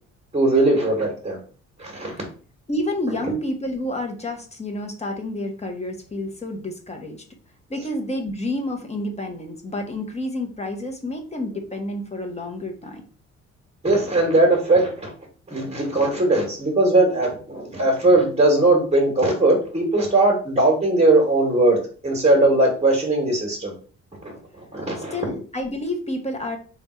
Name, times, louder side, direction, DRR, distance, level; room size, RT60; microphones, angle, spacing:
voice 1, 0.3-1.4 1.8-2.1 13.8-15.1 15.5-21.8 22.0-23.7 24.2-24.4 24.7-25.2, right 2 dB, 20° right, 0 dB, 1.4 m, -19 dB
voice 2, 2.7-7.2 7.7-13.0 25.1-26.6, left 1 dB, 20° left, 4 dB, 0.9 m, -29 dB
3.3 x 2.4 x 4.2 m, 0.40 s
cardioid pair, 90°, 30 cm